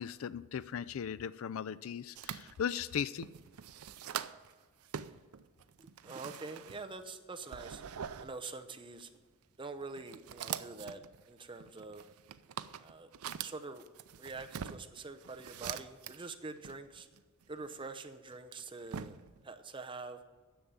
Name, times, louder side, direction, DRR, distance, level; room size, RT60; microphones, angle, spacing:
voice 1, 0.0-3.3, left 8 dB, 70° left, 18 dB, 0.4 m, -37 dB
sound 1, 2.2-4.5 4.8-7.1 7.5-8.4 9.0-9.2 9.8-16.4 16.6-17.8 18.3-19.4, right 8 dB, 90° right, 0.5 m, -44 dB
voice 2, 5.8-7.8 8.2-9.1 9.6-12.0 12.8-13.1 13.4-13.9 14.2-17.1 17.5-19.2 19.4-20.2, right 3 dB, 25° right, 6 dB, 0.7 m, -45 dB
10.5 x 7.0 x 8.8 m, 1.4 s
head